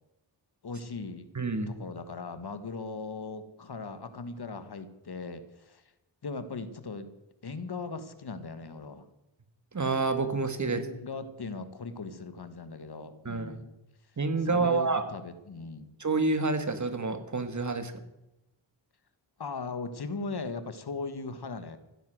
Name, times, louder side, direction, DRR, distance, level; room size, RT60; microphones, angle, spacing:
voice 1, 0.6-1.3 1.7-5.8 6.2-7.1 7.4-9.1 10.6-13.7 14.5-15.9 19.4-21.8, left 4 dB, 60° left, 11 dB, 1.6 m, -39 dB
voice 2, 1.4-1.7 9.7-10.8 13.3-13.5 14.2-15.0 16.0-17.9, right 3 dB, 40° right, 9 dB, 1.8 m, -28 dB
15.0 x 10.0 x 7.8 m, 0.93 s
wide cardioid pair, 80°, 44 cm